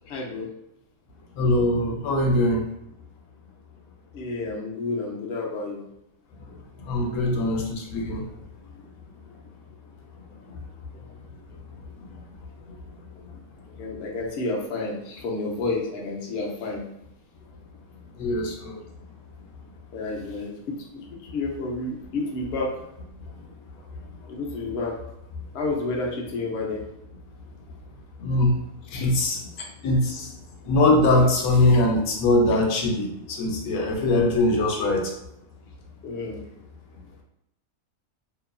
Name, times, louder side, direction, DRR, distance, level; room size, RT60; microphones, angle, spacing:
voice 1, 0.1-0.5 4.1-5.9 7.3-7.4 10.9-11.1 13.7-16.8 19.9-22.7 24.3-24.9 25.5-26.8 28.9-29.1 29.6-29.7 31.7-31.8 36.0-36.4, left 3 dB, 60° left, -2 dB, 0.7 m, -30 dB
voice 2, 1.4-2.6 6.9-8.2 18.2-18.8 28.2-28.6 28.9-29.4 29.8-30.3 30.7-35.1, left 2 dB, 90° left, 0 dB, 1.1 m, -22 dB
2.8 x 2.4 x 2.2 m, 0.81 s
omnidirectional pair, 1.5 m